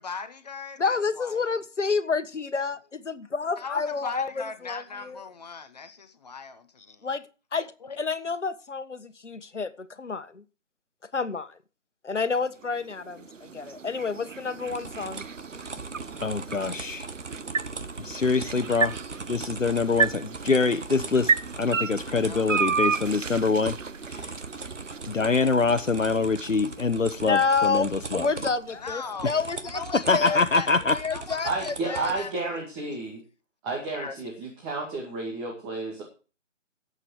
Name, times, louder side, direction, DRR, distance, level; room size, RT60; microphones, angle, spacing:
voice 1, 0.0-1.4 3.6-7.1 7.8-8.0 22.2-22.5 28.8-30.7 31.1-33.2 33.9-34.1, left 5 dB, 35° left, 1.1 m, -39 dB
voice 2, 0.8-5.2 7.0-7.2 7.5-7.7 8.0-10.4 11.1-11.6 12.0-15.2 27.2-30.4 30.9-32.1, left 4 dB, 70° left, 1.6 m, -29 dB
sound 1, 12.4-28.6, right 5 dB, 85° right, 0.7 m, -33 dB
sound 2, 14.7-32.2, right 3 dB, 65° right, 1.8 m, -40 dB
voice 3, 16.2-17.1 18.0-19.0 19.3-23.8 24.0-24.4 25.1-28.3 29.9-31.0, left 4 dB, 85° left, 1.1 m, -25 dB
voice 4, 31.4-33.2 33.6-36.0, right 3 dB, 15° right, 2.3 m, -31 dB
18.0 x 8.3 x 4.7 m
figure-of-eight pair, 145°, 37 cm